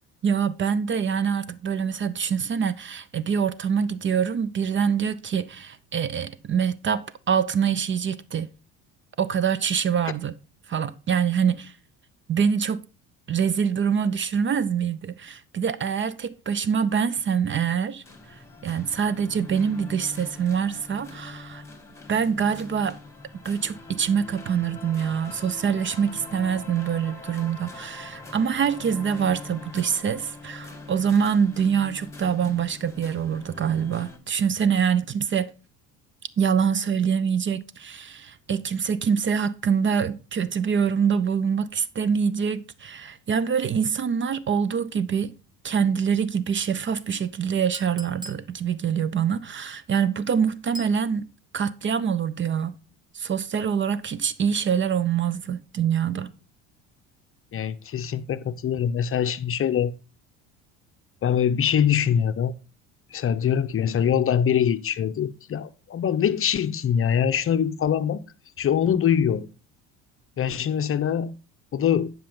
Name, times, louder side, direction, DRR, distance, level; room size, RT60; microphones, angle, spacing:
voice 1, 0.2-8.5 9.2-10.3 10.7-11.7 12.3-12.8 13.3-18.0 18.6-21.6 22.1-23.0 23.4-35.5 36.4-45.3 45.6-51.3 51.5-52.8 53.1-56.3, right 7 dB, 35° right, 0.6 m, -25 dB
sound 1, 18.0-34.2, left 3 dB, 10° left, 2.4 m, -43 dB
Chink clink, 47.7-48.5 50.7-51.0, right 1 dB, 10° right, 0.9 m, -40 dB
voice 2, 57.5-59.9 61.2-62.5 63.1-68.2 68.6-69.5 70.4-71.3 71.7-72.1, left 8 dB, 35° left, 0.7 m, -23 dB
10.0 x 5.5 x 3.7 m
hypercardioid pair, 70°, 36 cm